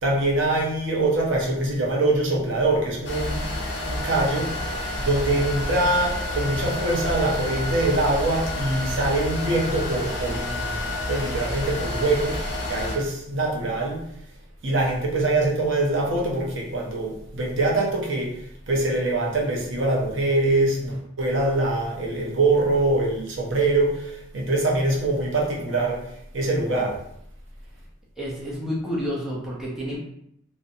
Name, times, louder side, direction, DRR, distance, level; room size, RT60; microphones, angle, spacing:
voice 1, 0.0-3.4 3.9-4.5 5.0-10.8 11.1-12.4 12.7-14.0 14.6-18.3 18.7-26.0 26.3-27.0, right 2 dB, 90° right, -1 dB, 0.7 m, -23 dB
sound 1, 3.0-13.0, left 1 dB, 65° left, 0.6 m, -29 dB
voice 2, 28.2-30.0, equal, 5° right, -7 dB, 0.5 m, -29 dB
2.5 x 2.1 x 2.6 m, 0.74 s
head